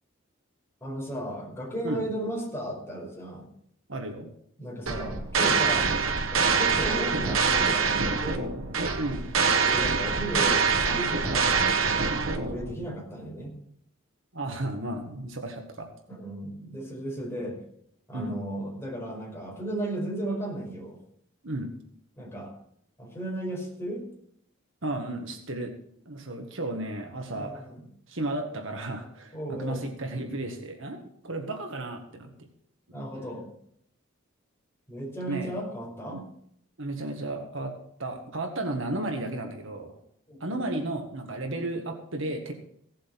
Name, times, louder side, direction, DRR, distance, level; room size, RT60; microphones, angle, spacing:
voice 1, 0.8-3.5 4.6-5.9 6.3-8.5 9.6-11.7 11.9-13.5 16.1-17.6 18.1-21.0 22.2-22.5 23.0-24.0 27.4-27.8 29.3-29.8 32.9-33.5 34.9-36.2 40.3-40.7, right 1 dB, 10° left, -3 dB, 5.3 m, -35 dB
voice 2, 3.9-4.3 9.0-9.3 14.3-15.9 18.1-18.4 21.4-21.7 24.8-25.7 26.1-27.6 28.1-32.3 35.3-35.5 36.1-36.2 36.8-37.7 38.0-39.9 40.4-42.5, right 2 dB, 65° right, 4 dB, 1.8 m, -33 dB
sound 1, 4.9-12.7, right 5 dB, 85° right, 1.5 m, -25 dB
16.5 x 7.6 x 6.0 m, 0.68 s
head